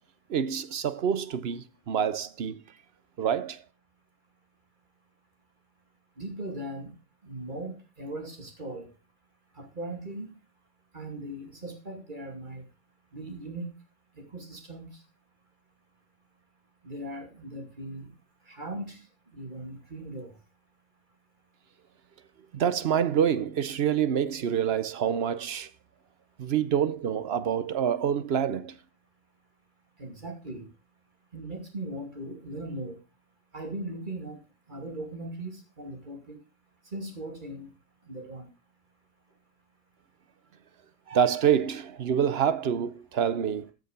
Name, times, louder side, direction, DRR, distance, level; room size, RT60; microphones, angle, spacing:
voice 1, 0.3-2.6 3.2-3.6 22.5-25.7 26.4-28.8 41.1-43.7, right 8 dB, 75° right, 1.0 m, -27 dB
voice 2, 6.2-6.9 7.2-8.9 9.5-10.3 10.9-12.6 13.1-13.7 14.2-14.9 16.8-18.1 18.5-19.0 19.3-20.4 30.0-30.7 31.3-33.0 33.5-34.4 34.7-36.4 36.9-37.7 38.0-38.5, right 1 dB, 50° right, 2.6 m, -38 dB
14.0 x 6.7 x 5.2 m
omnidirectional pair, 1.1 m